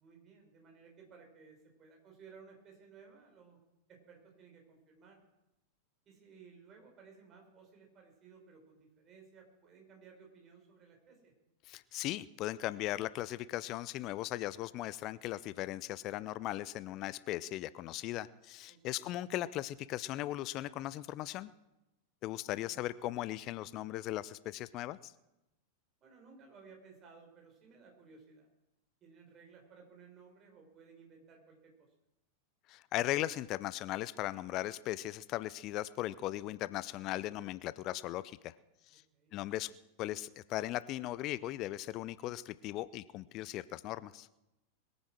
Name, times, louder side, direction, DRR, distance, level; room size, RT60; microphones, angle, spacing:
voice 1, 0.0-3.6 3.9-5.2 6.0-11.3 18.7-19.1 22.4-22.8 26.0-28.5 29.0-31.9 38.9-39.3, right 5 dB, 30° right, 2 dB, 5.0 m, -58 dB
voice 2, 11.6-21.5 22.2-25.1 32.7-38.5 38.9-39.0 39.3-39.7 40.0-44.3, left 15 dB, 40° left, 18 dB, 0.5 m, -38 dB
21.0 x 9.6 x 6.3 m, 0.97 s
figure-of-eight pair, 90°, 0 cm